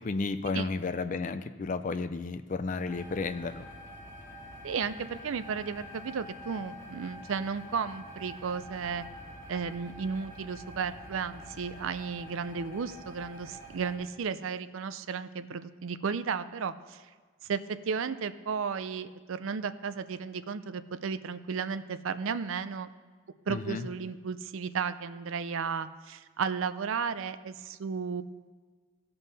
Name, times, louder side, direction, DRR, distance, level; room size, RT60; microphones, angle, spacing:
voice 1, 0.0-3.6 23.5-23.9, left 3 dB, 35° left, 10 dB, 0.4 m, -32 dB
sound 1, 2.8-14.0, equal, 10° left, 2.1 m, -47 dB
voice 2, 4.6-9.1 9.5-17.0 17.4-22.9 23.5-28.2, right 6 dB, 65° right, 12 dB, 0.4 m, -34 dB
16.5 x 5.5 x 4.1 m, 1.5 s
head